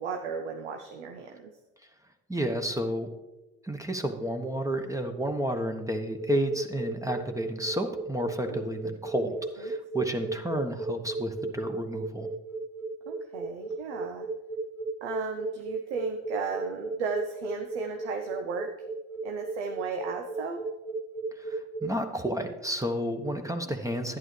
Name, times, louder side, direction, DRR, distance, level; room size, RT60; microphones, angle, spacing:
voice 1, 0.0-1.5 8.5-8.7 13.1-14.3 15.0-18.7 19.2-20.6 23.6-23.7, right 5 dB, 90° right, 5 dB, 0.7 m, -35 dB
voice 2, 2.3-3.1 3.6-12.3 21.3-24.2, equal, 10° right, 5 dB, 1.1 m, -31 dB
sound 1, 6.0-21.9, right 3 dB, 70° right, 1.8 m, -36 dB
11.0 x 9.0 x 3.2 m, 1.1 s
hypercardioid pair, 50°, 34 cm